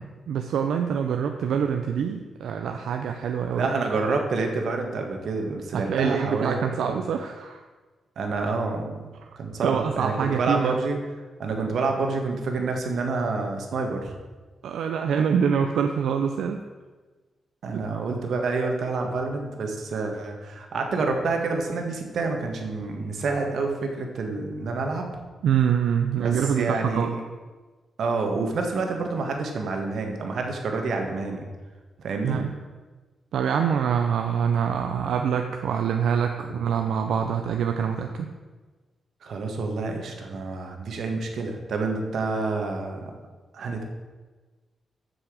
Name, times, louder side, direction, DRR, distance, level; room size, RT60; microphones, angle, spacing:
voice 1, 0.0-3.7 5.7-7.6 9.6-10.8 14.6-16.6 17.7-17.8 25.4-27.2 32.2-32.5 33.3-38.3, right 7 dB, 90° right, 5 dB, 0.6 m, -25 dB
voice 2, 3.6-7.0 8.2-9.0 9.4-11.0 11.4-14.1 17.6-25.1 26.2-27.2 28.0-31.4 32.0-32.5 36.4-36.5 39.2-43.0 43.5-43.8, right 3 dB, 65° right, 3 dB, 1.7 m, -28 dB
8.2 x 6.3 x 7.6 m, 1.3 s
wide cardioid pair, 140°, 0 cm